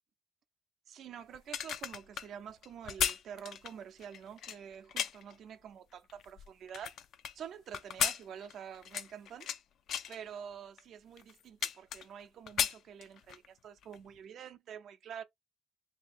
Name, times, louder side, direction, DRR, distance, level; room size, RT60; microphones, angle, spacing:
voice 1, 0.9-6.9 7.3-9.5 10.1-15.2, right 8 dB, 70° right, 0.5 m, -47 dB
sound 1, 1.3-5.3 5.9-7.3 7.7-9.6 9.9-10.2 10.8-10.9 11.2-12.2 12.5-13.5 13.8-14.0, left 9 dB, 70° left, 0.4 m, -35 dB
2.8 x 2.7 x 4.2 m
cardioid pair, 90°, 0 cm